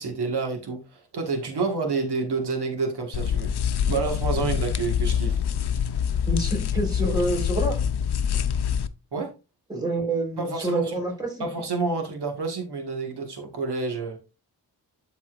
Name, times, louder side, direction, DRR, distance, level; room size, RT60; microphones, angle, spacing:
voice 1, 0.0-5.4 9.1-9.3 10.4-11.0 11.4-14.2, right 4 dB, 85° right, 1.8 m, -29 dB
sound 1, 3.1-8.9, left 8 dB, 80° left, 0.7 m, -25 dB
voice 2, 6.3-7.8 9.7-11.4, right 2 dB, 10° right, 4.0 m, -27 dB
12.5 x 4.1 x 2.5 m
wide cardioid pair, 115°, 39 cm